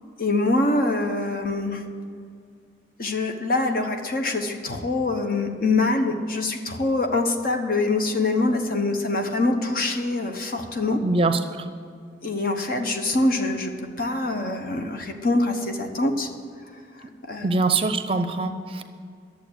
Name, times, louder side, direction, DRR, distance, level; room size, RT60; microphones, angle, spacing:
voice 1, 0.2-1.8 3.0-11.0 12.2-13.7 14.0-16.3 17.3-17.6, left 2 dB, 50° left, 5 dB, 1.1 m, -24 dB
voice 2, 11.0-11.6 17.4-18.8, right 3 dB, 30° right, 9 dB, 0.6 m, -23 dB
11.5 x 7.4 x 8.8 m, 2.3 s
head